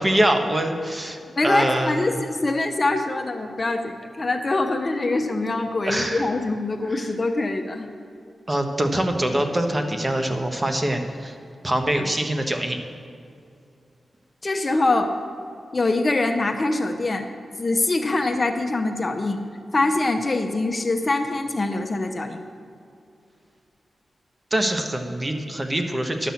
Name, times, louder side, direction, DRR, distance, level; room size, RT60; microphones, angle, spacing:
voice 1, 0.0-2.2 5.8-6.3 7.0-7.1 8.5-11.4 11.6-12.8 24.5-26.3, right 1 dB, 25° right, 5 dB, 1.2 m, -24 dB
voice 2, 1.4-7.9 14.4-15.1 15.7-17.3 17.6-19.4 19.7-22.4, left 2 dB, 35° left, 4 dB, 0.7 m, -24 dB
11.0 x 6.1 x 7.1 m, 2.5 s
cardioid pair, 75°, 0 cm